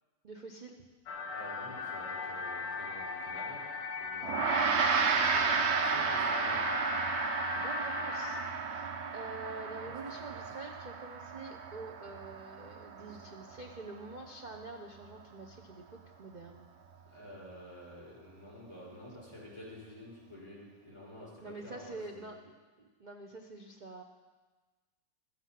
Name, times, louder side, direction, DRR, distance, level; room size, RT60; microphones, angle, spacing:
voice 1, 0.2-0.8 7.5-8.4 8.6-16.7 21.4-22.5 22.8-24.0, right 3 dB, 70° right, 1 dB, 0.4 m, -46 dB
sound 1, 1.1-8.4, left 5 dB, 75° left, 1.7 m, -39 dB
voice 2, 1.3-3.6 4.0-4.5 4.8-5.4 5.7-6.7 9.8-9.9 10.3-10.4 13.0-13.4 17.1-22.3, equal, 15° left, -7 dB, 4.8 m, -49 dB
Gong, 4.2-13.9, right 5 dB, 50° right, 0.8 m, -32 dB
13.5 x 8.9 x 5.8 m, 1.3 s
omnidirectional pair, 2.1 m